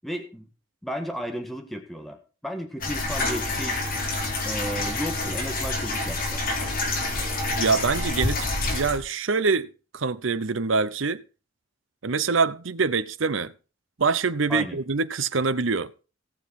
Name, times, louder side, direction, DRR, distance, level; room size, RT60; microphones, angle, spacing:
voice 1, 0.0-0.5 0.8-3.8 4.4-6.4 14.5-14.8, equal, ahead, 1.6 m, -34 dB
sound 1, 2.8-9.0, left 2 dB, 45° left, 3.8 m, -27 dB
voice 2, 7.6-11.2 12.0-13.5 14.0-15.9, right 4 dB, 75° right, 0.8 m, -25 dB
18.0 x 7.4 x 4.3 m
head